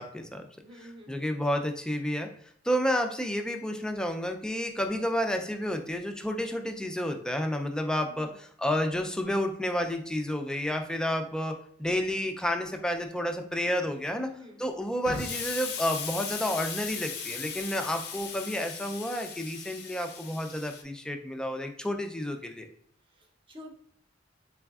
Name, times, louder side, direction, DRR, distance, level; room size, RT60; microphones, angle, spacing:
voice 1, 0.0-0.5 0.8-2.3 2.6-14.3 14.6-22.7, equal, 5° left, 5 dB, 0.3 m, -30 dB
voice 2, 0.6-1.4 8.1-8.4 14.2-14.6 23.1-23.7, left 2 dB, 30° right, 1 dB, 0.7 m, -48 dB
Explosion, 15.0-20.8, left 6 dB, 60° left, 0.5 m, -37 dB
4.0 x 3.5 x 2.3 m, 0.64 s
head